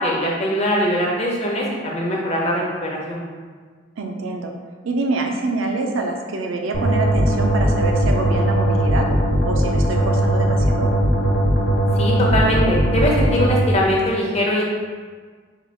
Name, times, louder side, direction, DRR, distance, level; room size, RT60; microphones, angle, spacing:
voice 1, 0.0-1.6 1.9-3.2 12.0-14.6, equal, 30° left, -3 dB, 0.8 m, -21 dB
voice 2, 4.0-4.5 4.8-9.1 9.4-10.9, right 3 dB, 85° right, 2 dB, 0.5 m, -25 dB
sound 1, 6.7-13.6, right 1 dB, 80° left, 1.1 m, -19 dB
3.9 x 2.4 x 4.5 m, 1.5 s
head